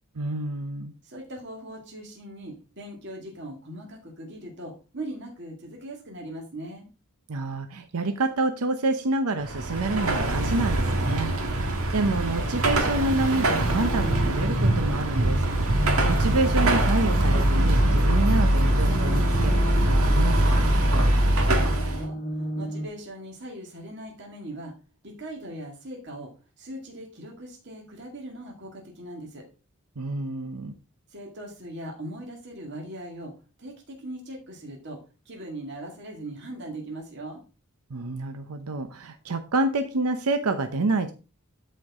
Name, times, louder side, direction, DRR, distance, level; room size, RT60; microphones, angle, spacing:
voice 1, 0.1-0.9 7.3-15.4 16.1-20.8 30.0-30.7 37.9-41.1, right 2 dB, 90° right, 7 dB, 0.8 m, -28 dB
voice 2, 1.0-6.9 21.2-24.7 25.0-26.3 26.6-29.4 31.1-33.3 33.6-37.4, right 1 dB, 50° right, 0 dB, 2.2 m, -40 dB
Car passing by / Traffic noise roadway noise / Engine, 9.4-22.0, right 1 dB, 70° right, 1.7 m, -22 dB
sound 1, 13.1-22.9, equal, 40° left, 1.1 m, -35 dB
12.5 x 4.6 x 3.6 m, 0.33 s
head